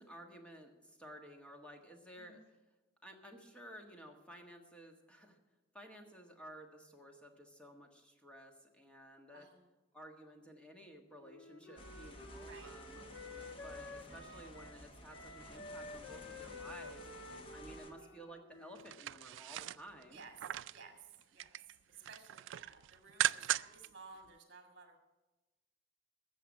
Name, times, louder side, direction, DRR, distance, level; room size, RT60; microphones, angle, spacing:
voice 1, 0.0-2.6 3.0-5.4 5.7-9.5 9.9-20.2, equal, 5° left, 2 dB, 1.5 m, -54 dB
voice 2, 9.3-9.7 12.5-12.7 20.1-20.3 20.7-25.0, right 4 dB, 50° right, 4 dB, 1.6 m, -56 dB
Wind instrument woodwind instrument, 11.2-14.8 15.1-19.0, left 2 dB, 70° left, 1.2 m, -51 dB
sound 1, 11.8-17.9, left 1 dB, 30° left, 1.3 m, -54 dB
sound 2, 18.8-20.8 21.2-21.7 22.0-23.9 24.2-24.3, right 12 dB, 85° right, 0.3 m, -38 dB
14.0 x 6.8 x 8.5 m, 1.1 s
head